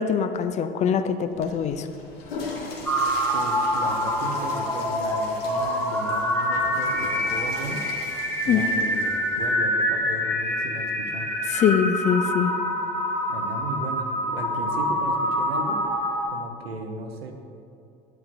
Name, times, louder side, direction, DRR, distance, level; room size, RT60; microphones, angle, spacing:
voice 1, 0.0-1.9 8.5-8.6 11.5-12.5, left 7 dB, 25° left, 10 dB, 0.4 m, -23 dB
Water / Toilet flush, 1.3-9.6, left 3 dB, 70° left, 1.2 m, -40 dB
sound 1, 2.8-16.3, equal, 5° left, 0.9 m, -26 dB
voice 2, 3.3-7.9 8.4-11.3 13.3-15.8 16.3-17.3, right 3 dB, 80° right, 4 dB, 0.8 m, -35 dB
9.5 x 7.8 x 2.6 m, 2.5 s
figure-of-eight pair, 70°, 31 cm